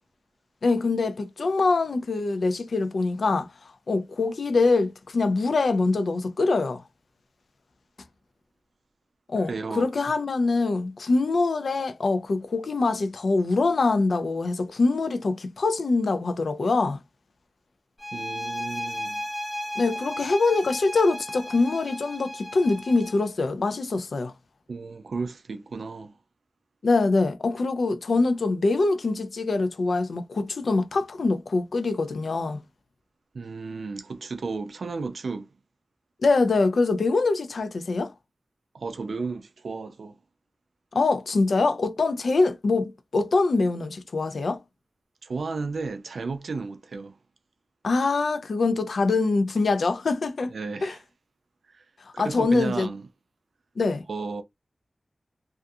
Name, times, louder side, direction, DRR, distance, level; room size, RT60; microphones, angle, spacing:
voice 1, 0.6-3.5 3.9-6.8 9.3-17.0 19.8-24.3 26.8-32.6 36.2-38.1 40.9-44.6 47.8-50.5 50.8-51.0 52.2-52.9 53.8-54.0, left 3 dB, 75° left, 0.4 m, -24 dB
voice 2, 9.4-9.9 18.1-19.2 24.7-26.1 33.3-35.5 38.7-40.2 45.2-47.2 50.5-51.0 51.7-51.9 52.2-53.1 54.1-54.4, right 4 dB, 85° right, 0.3 m, -33 dB
sound 1, 18.0-23.3, equal, 15° left, 0.5 m, -35 dB
2.4 x 2.3 x 2.6 m
wide cardioid pair, 110°, 0 cm